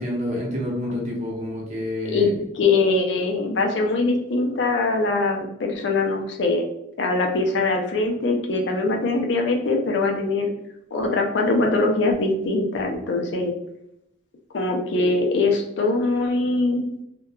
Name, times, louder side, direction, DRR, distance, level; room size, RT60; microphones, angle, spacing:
voice 1, 0.0-2.4, left 1 dB, 35° right, -3 dB, 0.7 m, -28 dB
voice 2, 2.6-6.7 7.0-10.5 10.9-13.5 14.5-16.8, left 3 dB, 65° left, 2 dB, 0.4 m, -22 dB
2.7 x 2.2 x 2.3 m, 0.78 s
head